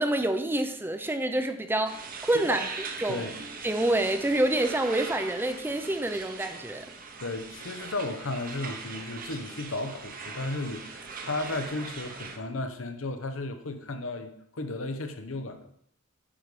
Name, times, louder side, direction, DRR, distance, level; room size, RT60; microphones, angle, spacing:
voice 1, 0.0-3.2 3.6-6.9, right 1 dB, 10° right, 8 dB, 0.5 m, -27 dB
sound 1, 1.8-12.4, right 4 dB, 45° right, 0.9 m, -41 dB
voice 2, 7.2-15.7, left 2 dB, 80° left, 7 dB, 0.9 m, -34 dB
8.8 x 5.3 x 4.9 m, 0.70 s
head